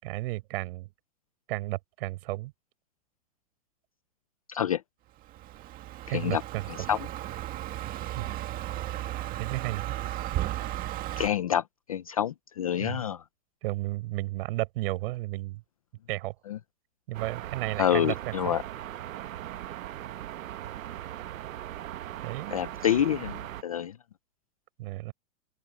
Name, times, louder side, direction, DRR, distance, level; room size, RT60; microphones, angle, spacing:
voice 1, 0.0-0.9 1.5-2.5 6.1-6.9 8.1-8.3 9.4-10.0 12.8-13.1 13.6-15.6 16.1-16.3 17.1-18.6 22.2-22.6 24.8-25.1, right 19 dB, 45° right, 5.8 m, -33 dB
voice 2, 4.5-4.8 6.1-6.4 6.9-7.0 11.2-11.6 11.9-13.2 17.8-18.6 22.5-23.9, left 10 dB, 30° left, 0.4 m, -27 dB
Car passing by, 5.2-11.3, right 14 dB, 20° right, 1.7 m, -35 dB
sound 1, 17.1-23.6, right 12 dB, 70° right, 1.3 m, -39 dB
supercardioid pair, 165°, 41 cm